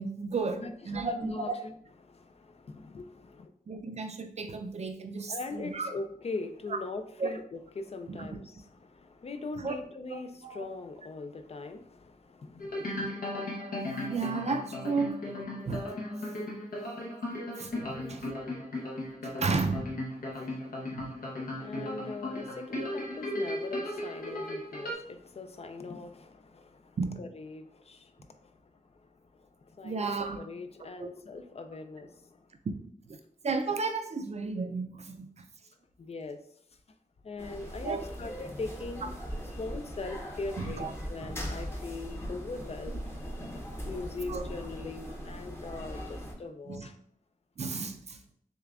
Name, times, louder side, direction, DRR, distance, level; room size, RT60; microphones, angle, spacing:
voice 1, 0.0-1.5 3.7-5.9 7.2-7.3 8.1-8.3 9.6-9.8 10.1-10.7 14.1-15.2 15.7-15.8 17.6-18.3 19.2-19.9 20.9-21.1 27.0-27.2 29.8-30.4 31.0-31.1 32.7-32.8 33.1-33.2 33.4-35.3 37.8-38.0 40.6-40.9 42.9-43.0 44.3-44.5 46.7-46.9 47.6-48.2, right 4 dB, 50° right, 6 dB, 0.4 m, -33 dB
voice 2, 0.6-1.7 2.0-3.5 5.3-13.1 20.2-28.5 29.4-32.5 36.0-36.4 37.2-39.2 39.6-43.0 43.8-47.0, left 3 dB, 45° left, 8 dB, 0.4 m, -41 dB
sound 1, 12.6-24.9, left 1 dB, 75° left, 0.8 m, -36 dB
sound 2, 37.4-46.3, equal, 15° left, 0.8 m, -40 dB
6.5 x 2.2 x 2.4 m, 0.65 s
wide cardioid pair, 120°, 15 cm